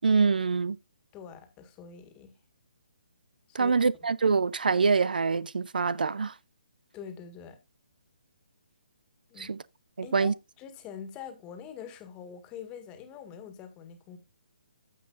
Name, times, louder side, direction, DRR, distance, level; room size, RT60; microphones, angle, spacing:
voice 1, 0.0-0.8 3.5-6.3 9.4-9.6 10.0-10.3, right 5 dB, 70° right, 0.5 m, -25 dB
voice 2, 1.1-2.4 3.5-3.8 6.9-7.6 9.3-9.5 10.0-14.2, left 7 dB, 20° left, 1.7 m, -44 dB
14.5 x 5.5 x 2.5 m
figure-of-eight pair, 140°, 5 cm